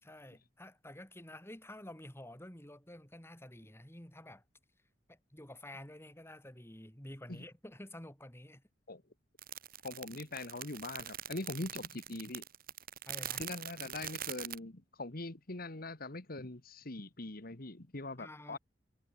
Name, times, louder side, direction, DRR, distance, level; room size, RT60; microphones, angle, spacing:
voice 1, 0.0-4.4 5.1-8.6 13.1-13.5 18.2-18.6, left 1 dB, 15° left, 4.1 m, -50 dB
sound 1, 9.4-14.6, right 10 dB, 55° right, 2.6 m, -43 dB
voice 2, 9.8-12.4 13.4-18.6, left 2 dB, 55° left, 2.0 m, -42 dB
head